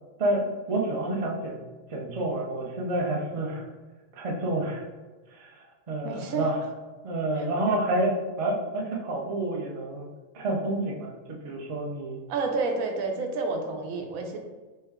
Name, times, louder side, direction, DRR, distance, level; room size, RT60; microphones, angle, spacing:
voice 1, 0.2-1.6 1.9-3.6 4.1-4.8 5.3-5.5 5.9-6.6 7.0-10.1 10.3-12.2, right 1 dB, 55° right, -2 dB, 0.3 m, -29 dB
voice 2, 6.0-6.5 7.4-7.5 12.3-14.4, right 3 dB, 75° right, 3 dB, 1.0 m, -29 dB
4.3 x 2.2 x 3.5 m, 1.3 s
omnidirectional pair, 1.5 m